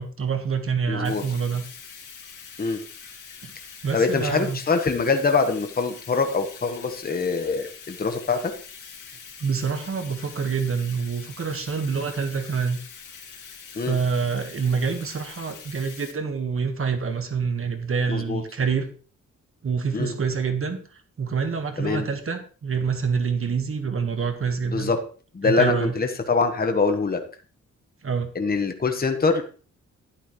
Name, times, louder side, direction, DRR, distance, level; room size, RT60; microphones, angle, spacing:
voice 1, 0.0-1.6 3.4-3.5 3.8-4.6 9.4-12.8 13.7-18.9 19.6-20.8 21.2-24.9 25.4-25.9 28.0-28.3, right 5 dB, 45° right, 7 dB, 1.5 m, -26 dB
voice 2, 0.9-1.2 2.6-2.8 3.9-8.5 13.7-13.9 18.1-18.4 19.9-20.1 21.8-22.1 24.7-25.0 25.3-27.2 28.3-29.4, left 4 dB, 30° left, 6 dB, 1.2 m, -24 dB
Bathtub (filling or washing), 1.0-16.1, left 6 dB, 85° left, 2.7 m, -44 dB
11.5 x 10.0 x 3.1 m, 0.40 s
cardioid pair, 100°, 30 cm